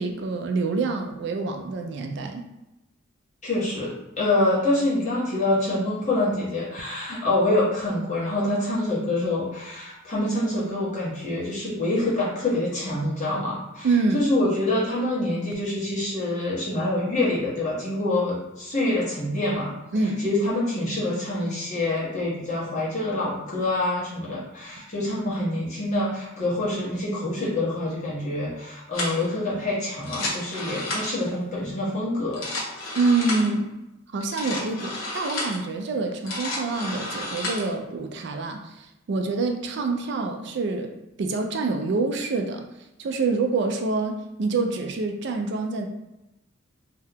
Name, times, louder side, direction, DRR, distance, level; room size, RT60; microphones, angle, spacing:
voice 1, 0.0-2.5 13.8-14.2 19.9-20.2 33.0-33.7 34.1-40.9 41.2-42.7 43.0-45.9, right 3 dB, 60° right, 5 dB, 0.4 m, -26 dB
voice 2, 3.4-13.9 14.1-19.7 20.2-32.4, left 1 dB, 35° left, -7 dB, 1.1 m, -26 dB
sound 1, 28.9-29.2 30.0-31.3 32.2-33.5 34.2-35.6 36.1-37.7, left 2 dB, 75° left, 0.9 m, -32 dB
2.7 x 2.3 x 3.4 m, 0.93 s
head